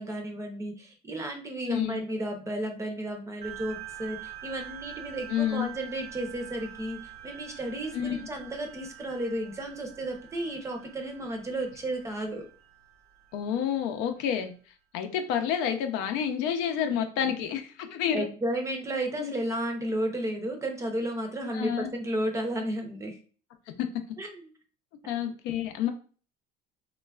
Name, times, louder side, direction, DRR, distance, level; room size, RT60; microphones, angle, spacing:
voice 1, 0.0-12.5 17.8-23.2 24.2-24.5, right 1 dB, 15° right, 3 dB, 0.5 m, -33 dB
voice 2, 1.7-2.0 5.3-5.7 7.9-8.2 13.3-14.5 14.9-18.3 19.2-19.3 21.5-21.9 23.8-23.9 25.1-25.9, left 9 dB, 80° left, 6 dB, 0.5 m, -29 dB
sound 1, 3.4-14.3, right 11 dB, 85° right, 0.9 m, -46 dB
3.1 x 2.2 x 2.3 m, 0.40 s
cardioid pair, 140°, 19 cm